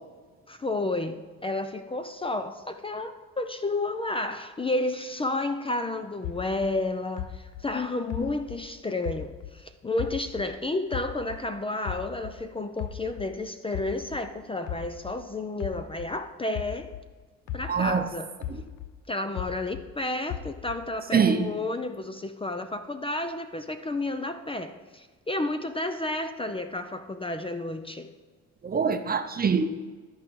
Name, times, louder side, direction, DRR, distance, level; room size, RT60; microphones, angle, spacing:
voice 1, 0.5-16.9 17.5-18.3 19.1-28.1, left 2 dB, 20° left, 8 dB, 0.5 m, -31 dB
sound 1, 6.2-9.6 10.0-12.4 12.8-17.1 17.5-19.9 20.3-21.0, left 10 dB, 90° left, 0.5 m, -38 dB
voice 2, 17.7-18.1 18.5-18.6 21.1-21.5 28.6-29.7, right 6 dB, 30° right, 8 dB, 0.7 m, -24 dB
12.5 x 4.7 x 4.7 m, 1.4 s
cardioid pair, 90°, 30 cm